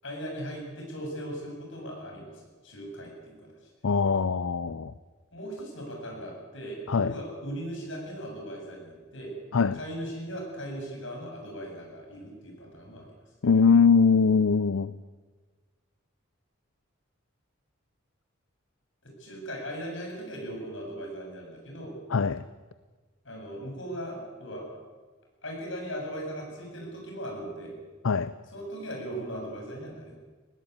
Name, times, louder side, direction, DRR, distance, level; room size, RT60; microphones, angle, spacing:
voice 1, 0.0-3.6 5.3-9.3 9.7-13.1 19.0-21.9 23.2-24.7 25.4-27.8 28.5-30.1, equal, 70° left, 7.8 m, -38 dB
voice 2, 3.8-4.9 6.9-7.1 9.5-9.8 13.4-14.9 22.1-22.4 28.0-28.3, left 5 dB, 85° left, 0.6 m, -22 dB
19.5 x 17.0 x 9.4 m
head